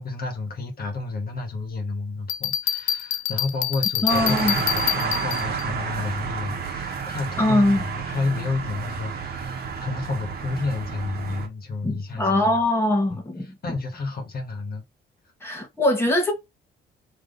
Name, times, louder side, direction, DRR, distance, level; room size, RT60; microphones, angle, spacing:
voice 1, 0.0-12.5 13.1-14.8, left 3 dB, 50° left, 1.6 m, -31 dB
Bell, 2.3-5.6, left 12 dB, 85° left, 0.5 m, -26 dB
voice 2, 4.0-4.6 7.4-7.8 11.8-13.5 15.4-16.3, left 1 dB, 10° left, 1.3 m, -22 dB
sound 1, 4.1-11.5, right 6 dB, 50° right, 1.2 m, -30 dB
3.6 x 3.1 x 3.9 m
cardioid pair, 90°, 20 cm